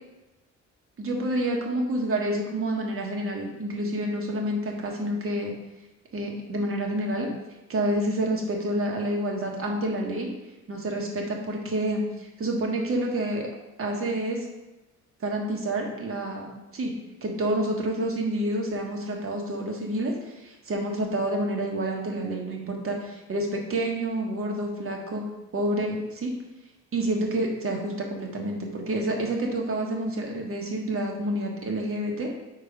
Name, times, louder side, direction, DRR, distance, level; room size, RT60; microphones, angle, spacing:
voice 1, 1.0-5.5 6.1-7.3 7.7-10.3 10.7-13.5 13.8-14.5 15.2-16.9 17.2-25.2 25.5-26.3 26.9-32.3, right 1 dB, 45° right, 0 dB, 1.4 m, -28 dB
5.0 x 4.1 x 5.1 m, 1.0 s
cardioid pair, 90°, 30 cm